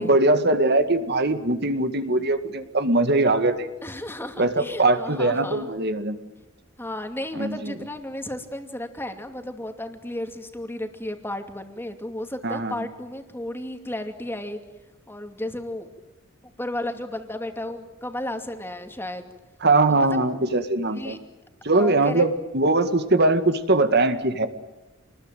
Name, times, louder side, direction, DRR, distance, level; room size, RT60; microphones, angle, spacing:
voice 1, 0.0-3.7 4.4-6.2 7.4-7.6 12.4-12.7 19.6-21.2 21.6-24.5, right 2 dB, 50° right, 9 dB, 2.0 m, -21 dB
voice 2, 3.8-5.7 6.8-14.6 15.1-15.9 16.6-19.3 19.9-20.2 20.9-21.2 21.7-22.2, left 1 dB, 10° left, 6 dB, 2.5 m, -33 dB
28.0 x 20.5 x 9.2 m, 0.99 s
head